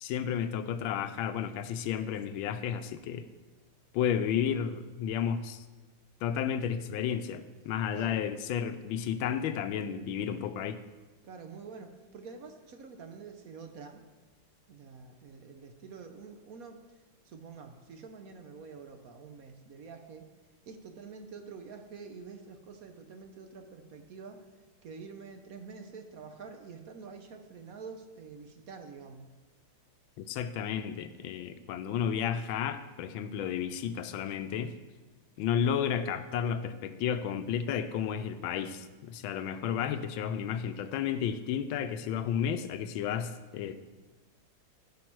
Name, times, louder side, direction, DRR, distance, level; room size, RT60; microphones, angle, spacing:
voice 1, 0.0-3.3 3.9-5.6 6.2-10.8 30.2-34.7 35.4-43.8, left 8 dB, 85° left, 11 dB, 1.4 m, -32 dB
voice 2, 11.2-14.0 14.7-17.0 17.2-20.3 20.7-29.3, right 5 dB, 60° right, 5 dB, 1.0 m, -47 dB
15.5 x 5.3 x 4.6 m, 1.2 s
omnidirectional pair, 2.2 m